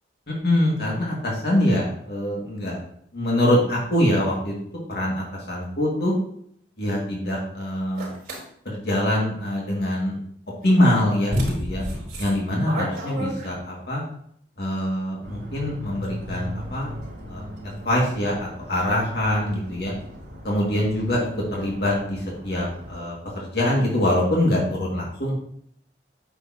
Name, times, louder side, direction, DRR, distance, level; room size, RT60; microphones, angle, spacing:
voice 1, 0.3-2.8 3.1-4.5 4.9-6.1 6.8-8.1 8.7-10.2 10.6-11.8 12.2-14.0 14.6-16.9 17.3-17.4 17.8-19.9 20.4-25.4, left 1 dB, 60° left, -3 dB, 2.3 m, -24 dB
sound 1, 8.0-8.4 10.6-10.7 11.3-13.8, equal, 50° right, 3.6 m, -29 dB
sound 2, 15.2-23.0, equal, 80° right, 2.6 m, -38 dB
9.3 x 7.0 x 2.9 m, 0.66 s
head